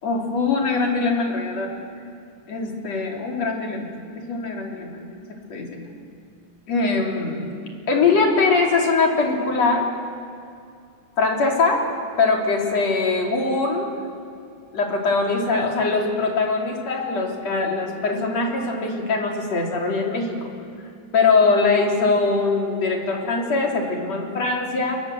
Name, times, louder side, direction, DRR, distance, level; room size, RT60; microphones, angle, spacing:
voice 1, 0.0-1.7 2.5-3.9 4.1-5.0 5.5-5.8 6.7-7.4 7.9-9.9 11.2-11.9 12.2-13.9 14.7-20.5 21.1-25.0, left 4 dB, 55° left, 0 dB, 4.6 m, -22 dB
28.0 x 22.0 x 7.7 m, 2.3 s
omnidirectional pair, 3.5 m